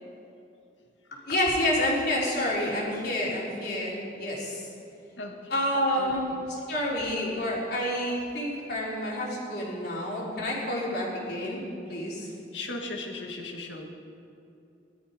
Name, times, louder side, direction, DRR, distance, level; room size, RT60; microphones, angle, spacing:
voice 1, 1.2-4.7 5.5-11.6 11.9-12.3, left 1 dB, 60° left, -5 dB, 4.0 m, -29 dB
voice 2, 5.9-6.4 12.5-13.8, left 2 dB, 80° left, 3 dB, 1.9 m, -37 dB
18.5 x 12.5 x 5.1 m, 2.7 s
head